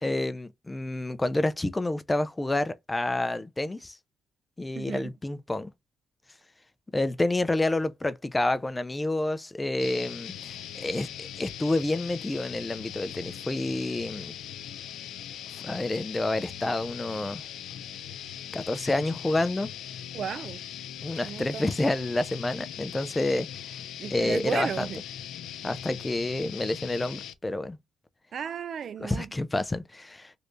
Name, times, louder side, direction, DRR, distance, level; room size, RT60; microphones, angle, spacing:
voice 1, 0.0-4.0 4.6-5.7 6.9-14.3 15.5-17.4 18.5-19.7 21.0-23.5 24.1-24.9 25.6-27.8 29.0-30.3, left 2 dB, 15° left, 0.4 m, -29 dB
voice 2, 4.8-5.1 20.1-20.6 21.2-21.7 24.0-25.0 28.3-29.3, right 8 dB, 55° right, 0.3 m, -34 dB
sound 1, 9.8-27.3, left 10 dB, 85° left, 0.4 m, -40 dB
3.2 x 2.6 x 3.0 m
cardioid pair, 90°, 0 cm